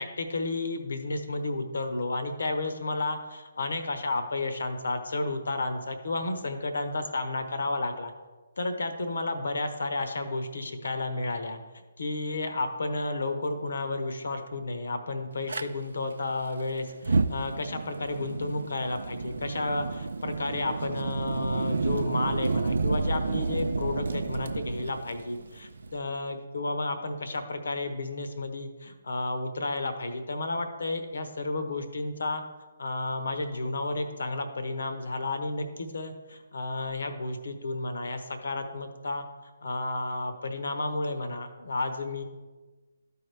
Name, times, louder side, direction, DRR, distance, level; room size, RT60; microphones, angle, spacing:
voice 1, 0.0-8.1 8.6-11.6 12.0-32.4 32.8-39.3 39.6-42.2, left 2 dB, 70° left, 8 dB, 1.0 m, -32 dB
Fire, 15.5-15.6 16.9-26.0, right 3 dB, 70° right, 0.4 m, -30 dB
13.0 x 4.8 x 3.4 m, 1.3 s
figure-of-eight pair, 140°, 0 cm